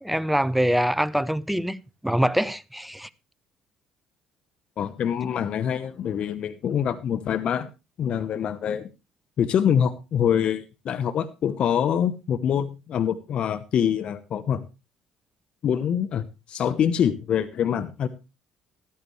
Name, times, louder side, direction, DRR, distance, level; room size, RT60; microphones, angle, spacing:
voice 1, 0.0-3.1, equal, 5° right, 0.7 m, -24 dB
voice 2, 4.8-7.7 8.0-8.9 9.4-14.6 15.6-18.1, left 8 dB, 55° left, 1.0 m, -25 dB
14.5 x 12.5 x 3.2 m
hypercardioid pair, 60°, 2 cm